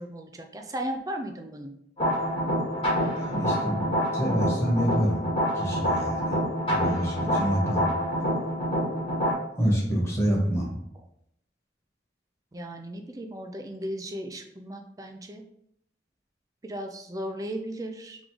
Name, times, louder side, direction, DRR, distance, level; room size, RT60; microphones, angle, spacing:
voice 1, 0.0-1.8 8.7-9.2 12.5-15.5 16.6-18.2, right 1 dB, 20° right, 4 dB, 0.4 m, -36 dB
sound 1, 2.0-9.3, equal, 30° left, 1.2 m, -27 dB
voice 2, 2.9-3.8 4.1-5.2 5.5-6.4 6.7-7.9 9.6-10.7, equal, 15° left, -4 dB, 1.2 m, -27 dB
3.7 x 3.0 x 3.8 m, 0.75 s
head